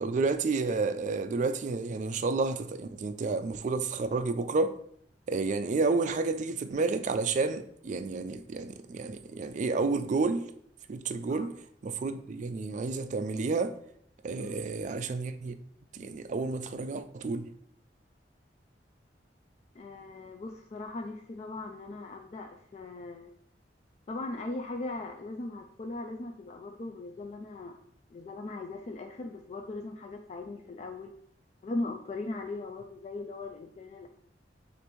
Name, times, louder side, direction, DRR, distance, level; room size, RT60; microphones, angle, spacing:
voice 1, 0.0-4.8 5.3-10.5 10.9-11.5 11.8-13.8 14.2-15.6 15.9-17.5, right 3 dB, 40° right, 0.3 m, -30 dB
voice 2, 19.7-23.3 24.1-27.8 28.1-31.1 31.6-34.1, left 2 dB, 35° left, 0.3 m, -39 dB
6.4 x 2.6 x 3.0 m
head